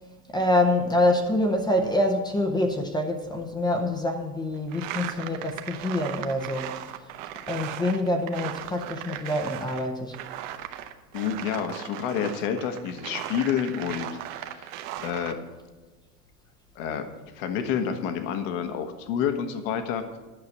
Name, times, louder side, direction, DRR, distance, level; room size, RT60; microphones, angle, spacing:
voice 1, 0.3-6.8 7.5-10.2, left 1 dB, 10° left, 4 dB, 0.6 m, -26 dB
sound 1, 4.7-9.9 10.1-15.3, right 12 dB, 55° right, 1.0 m, -37 dB
voice 2, 11.1-14.7 15.0-15.4 16.7-17.1 17.3-20.0, left 8 dB, 55° left, 7 dB, 1.4 m, -29 dB
10.5 x 5.8 x 7.9 m, 1.3 s
supercardioid pair, 140°, 46 cm